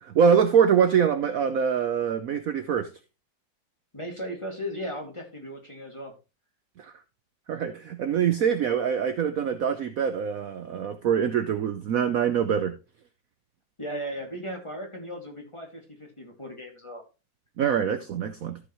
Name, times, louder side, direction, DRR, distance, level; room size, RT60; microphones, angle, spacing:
voice 1, 0.0-2.9 6.8-6.9 7.5-12.7 17.6-18.6, right 7 dB, 60° right, 1.0 m, -24 dB
voice 2, 3.9-6.1 13.8-17.0, equal, 15° left, 2.2 m, -36 dB
14.0 x 6.4 x 3.0 m
omnidirectional pair, 2.0 m